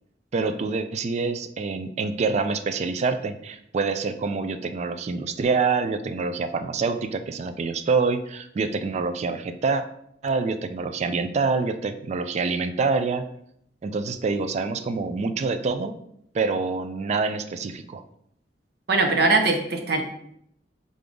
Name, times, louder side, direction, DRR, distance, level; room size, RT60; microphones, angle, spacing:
voice 1, 0.3-9.8 10.2-13.3 13.8-16.0 16.3-18.0, right 4 dB, 40° right, 10 dB, 0.3 m, -26 dB
voice 2, 18.9-20.0, right 3 dB, 65° right, 4 dB, 0.7 m, -21 dB
3.8 x 3.5 x 3.8 m, 0.72 s
head